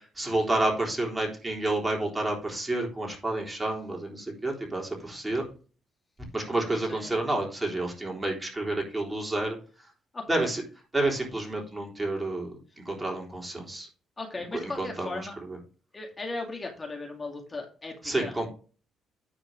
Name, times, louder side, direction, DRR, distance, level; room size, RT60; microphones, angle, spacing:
voice 1, 0.2-5.4 6.3-9.6 10.3-10.6 10.9-12.5 12.9-13.9 14.5-15.2 15.5-15.6 18.0-18.5, right 2 dB, 15° right, 0 dB, 3.6 m, -29 dB
voice 2, 6.7-7.2 10.1-10.5 14.2-15.4 15.9-18.3, left 3 dB, 25° left, 1 dB, 2.0 m, -37 dB
9.9 x 4.5 x 5.1 m, 0.38 s
cardioid pair, 90°, 0 cm